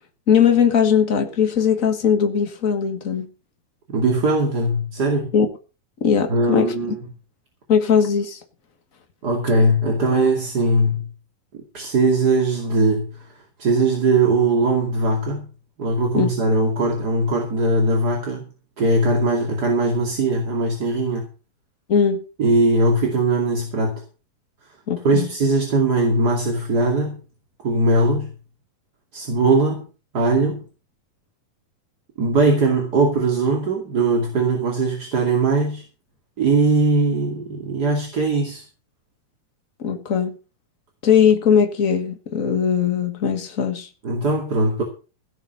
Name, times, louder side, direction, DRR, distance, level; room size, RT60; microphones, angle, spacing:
voice 1, 0.3-3.3 5.3-5.5 6.0-7.0 7.7-8.4 16.1-16.3 21.9-22.2 24.9-25.3 39.8-40.4 41.0-43.9, left 7 dB, 80° left, 0.7 m, -19 dB
voice 2, 3.9-5.3 6.3-7.0 9.2-11.1 11.7-13.2 13.6-15.5 15.8-18.4 18.8-21.3 22.4-24.0 25.0-27.2 27.6-28.3 29.1-29.8 30.1-30.6 32.2-35.8 36.4-38.6 44.0-44.8, right 2 dB, 30° right, 2.5 m, -20 dB
16.5 x 7.1 x 6.6 m
omnidirectional pair, 4.1 m